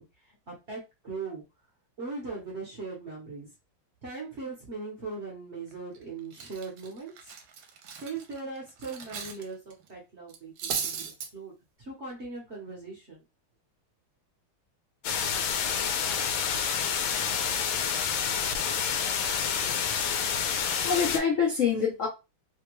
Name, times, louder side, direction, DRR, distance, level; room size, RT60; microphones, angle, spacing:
voice 1, 0.0-1.4 2.0-3.5 4.0-7.3 8.0-11.5 11.8-13.2, right 3 dB, 50° right, 0.9 m, -39 dB
Cutlery silverware, 5.7-6.0 6.3-9.4 9.7-9.9 10.3-11.3, right 7 dB, 75° right, 1.3 m, -36 dB
sound 1, 15.0-21.2, left 7 dB, 85° left, 1.4 m, -28 dB
voice 2, 19.8-22.1, left 6 dB, 70° left, 0.7 m, -28 dB
3.3 x 2.2 x 3.0 m
omnidirectional pair, 2.2 m